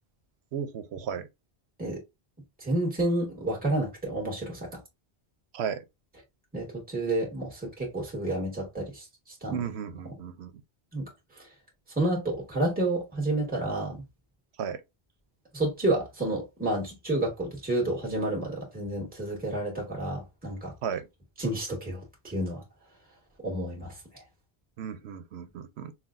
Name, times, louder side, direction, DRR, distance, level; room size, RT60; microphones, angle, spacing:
voice 1, 0.5-1.3 5.5-5.8 9.5-10.5 14.6-14.8 20.8-21.1 24.8-25.9, right 7 dB, 85° right, 0.9 m, -34 dB
voice 2, 2.6-4.8 6.5-9.0 9.4-9.6 10.9-11.1 11.9-14.0 15.5-20.7 21.4-22.6 23.4-23.9, right 1 dB, 10° right, 1.5 m, -30 dB
5.7 x 2.3 x 2.5 m
omnidirectional pair, 1.1 m